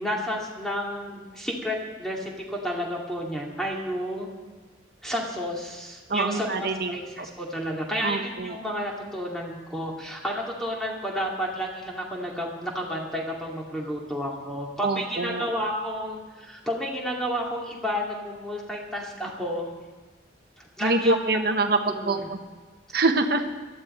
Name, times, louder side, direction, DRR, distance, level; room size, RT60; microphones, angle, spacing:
voice 1, 0.0-4.3 5.0-19.7 20.6-21.2 21.8-22.3, equal, 5° left, -2 dB, 2.3 m, -31 dB
voice 2, 6.1-6.9 8.0-8.5 14.8-15.4 20.8-22.4 22.9-23.4, right 2 dB, 55° right, 5 dB, 1.1 m, -25 dB
18.5 x 12.5 x 4.4 m, 1.4 s
head